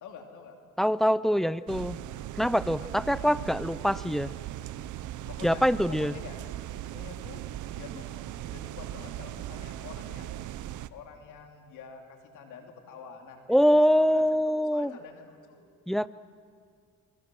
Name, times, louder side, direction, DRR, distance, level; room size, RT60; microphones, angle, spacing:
voice 1, 0.0-0.6 2.8-3.3 4.9-6.4 6.9-7.4 7.7-10.4 10.9-13.6 13.9-15.7, left 6 dB, 80° left, 3 dB, 2.9 m, -47 dB
voice 2, 0.8-2.0 2.4-4.3 5.4-6.1 13.5-14.9 15.9-16.1, equal, ahead, 17 dB, 0.5 m, -24 dB
sound 1, 1.7-10.9, right 13 dB, 80° right, 0.8 m, -39 dB
28.0 x 23.0 x 6.2 m, 2.2 s
cardioid pair, 90°, 30 cm